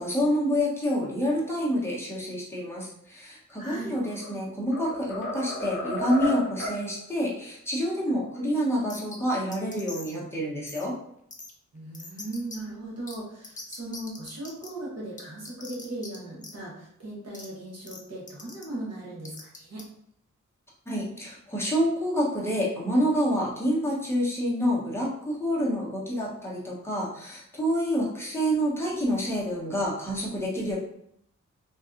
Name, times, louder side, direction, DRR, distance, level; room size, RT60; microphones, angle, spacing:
voice 1, 0.0-10.9 20.9-30.8, equal, 10° left, -5 dB, 0.8 m, -28 dB
voice 2, 3.6-3.9 11.7-19.8, right 1 dB, 55° right, -5 dB, 1.0 m, -38 dB
sound 1, 3.8-4.3 4.7-6.8, left 1 dB, 40° left, 0.9 m, -33 dB
sound 2, 8.9-9.2 9.5-10.2 10.7-10.8 11.3-11.5 11.9-12.6 13.1-13.2 13.4-14.7 15.2-16.2 16.4-16.5 17.3-17.5 17.9-18.0 18.3-18.6 19.2-19.8, left 3 dB, 25° left, 0.4 m, -42 dB
2.6 x 2.3 x 2.4 m, 0.72 s
wide cardioid pair, 90°, 31 cm